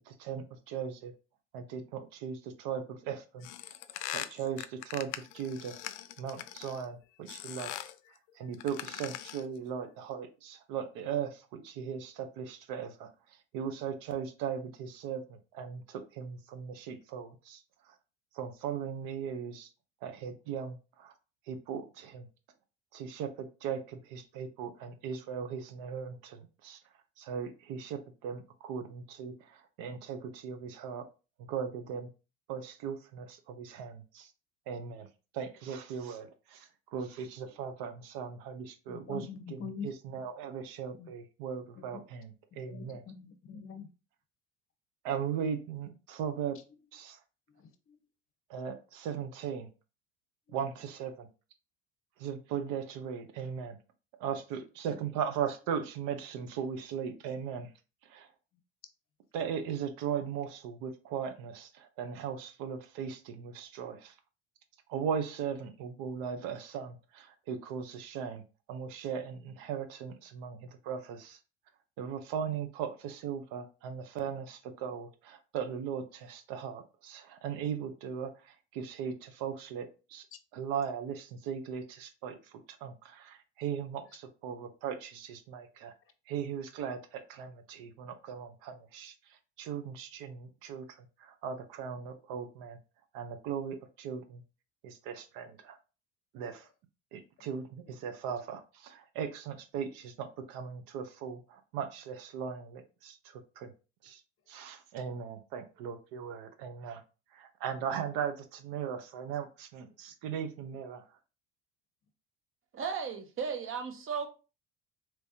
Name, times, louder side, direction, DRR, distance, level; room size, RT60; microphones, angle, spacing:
voice 1, 0.1-1.1 1.5-3.5 4.1-5.8 6.2-7.8 8.1-17.6 17.9-18.0 18.3-19.7 20.0-21.1 21.5-22.3 22.9-26.8 27.2-31.0 31.4-32.1 32.5-34.3 34.7-35.1 35.3-43.0 45.0-46.6 46.9-47.2 48.5-49.7 50.5-51.3 52.2-53.8 54.2-57.7 58.0-58.3 59.3-64.2 64.9-68.4 68.7-71.4 72.0-80.2 80.5-82.8 83.6-85.9 86.3-92.8 93.1-94.4 94.8-95.8 96.3-96.7 97.1-103.7 104.0-104.2 104.5-107.0 107.3-111.0, right 7 dB, 65° right, 0.8 m, -38 dB
sound 1, 3.4-6.9 7.3-8.0 8.5-9.5, left 13 dB, 70° left, 0.5 m, -41 dB
voice 2, 38.9-39.9 40.9-41.1 41.8-42.0 42.7-43.9 47.5-48.0, left 6 dB, 35° left, 0.8 m, -44 dB
voice 3, 112.7-114.3, right 6 dB, 35° right, 0.8 m, -35 dB
3.4 x 3.0 x 2.7 m
hypercardioid pair, 85°, 36 cm